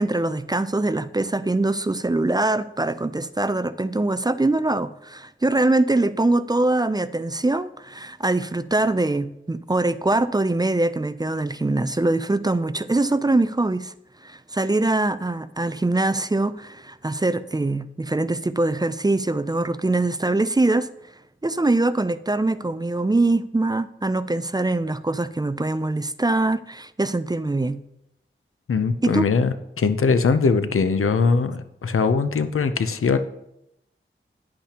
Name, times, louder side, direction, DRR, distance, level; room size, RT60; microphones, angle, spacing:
voice 1, 0.0-13.9 14.2-20.9 21.4-27.8 29.0-29.3, right 2 dB, 20° right, 0.4 m, -23 dB
voice 2, 28.7-33.2, left 5 dB, 85° left, 0.6 m, -21 dB
10.0 x 8.6 x 2.9 m
wide cardioid pair, 50°, 21 cm